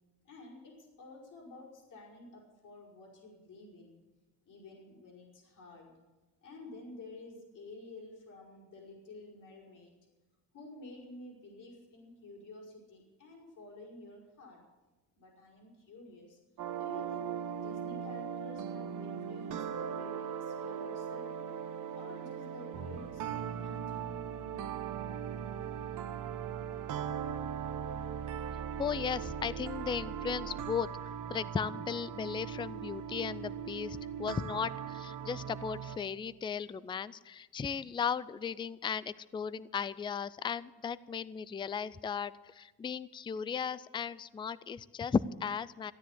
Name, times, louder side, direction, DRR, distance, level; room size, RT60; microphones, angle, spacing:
voice 1, 0.2-4.0 4.5-5.9 6.4-10.1 10.5-14.7 15.2-16.4 16.8-21.6 21.9-24.1, left 2 dB, 60° left, -2 dB, 5.2 m, -51 dB
sound 1, 16.6-36.0, right 8 dB, 60° right, 1.2 m, -39 dB
voice 2, 28.8-30.9 31.3-45.9, left 6 dB, 15° left, 18 dB, 0.4 m, -36 dB
15.0 x 10.0 x 8.2 m, 1.2 s
cardioid pair, 110°, 35 cm